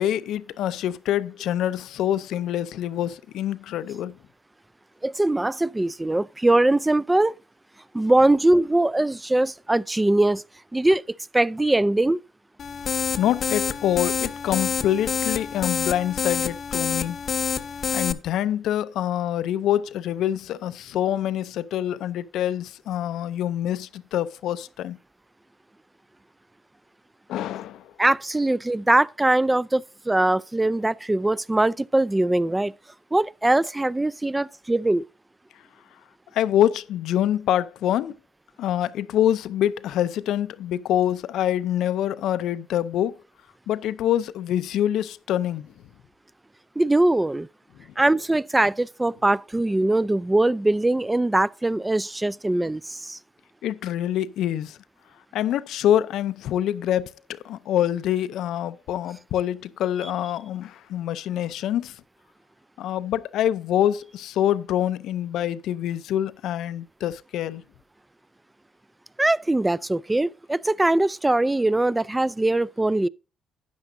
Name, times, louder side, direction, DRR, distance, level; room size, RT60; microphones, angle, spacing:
voice 1, 0.0-4.1 13.2-17.2 17.9-25.0 27.3-27.9 36.3-38.1 38.6-43.2 43.7-45.7 53.6-54.8 55.3-62.0 62.8-67.6, left 11 dB, 85° left, 0.5 m, -25 dB
voice 2, 5.0-7.3 7.9-10.4 10.7-12.2 28.0-32.7 33.1-35.0 46.8-47.5 48.0-53.2 69.2-73.1, right 2 dB, 15° right, 0.4 m, -21 dB
sound 1, 12.6-18.1, left 6 dB, 50° left, 0.8 m, -27 dB
12.5 x 9.3 x 2.6 m
cardioid pair, 90°, 0 cm